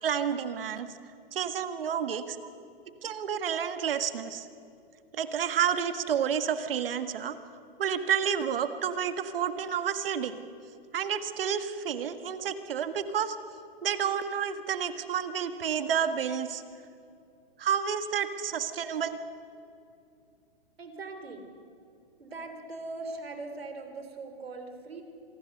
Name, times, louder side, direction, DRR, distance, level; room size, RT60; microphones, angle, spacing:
voice 1, 0.0-0.9 1.3-2.4 3.0-4.5 5.1-7.4 7.8-10.4 10.9-13.4 13.8-16.6 17.6-19.2, right 8 dB, 70° right, 10 dB, 1.7 m, -30 dB
voice 2, 20.8-21.4 22.2-25.0, right 3 dB, 90° right, 6 dB, 3.6 m, -40 dB
26.0 x 18.5 x 6.7 m, 2.5 s
hypercardioid pair, 130°, 30 cm